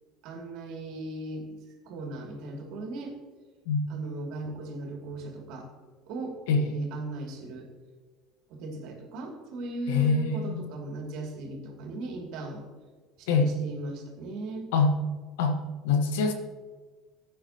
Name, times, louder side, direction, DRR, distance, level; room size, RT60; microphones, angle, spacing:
voice 1, 0.2-1.6 1.9-3.2 3.9-5.7 6.1-7.7 8.5-12.6 13.2-14.7, right 2 dB, 60° right, 1 dB, 2.6 m, -38 dB
voice 2, 9.9-10.7 13.3-13.5 14.7-15.0 15.4-16.3, left 4 dB, 70° left, 6 dB, 1.2 m, -24 dB
15.5 x 9.2 x 2.9 m, 1.4 s
hypercardioid pair, 70°, 0 cm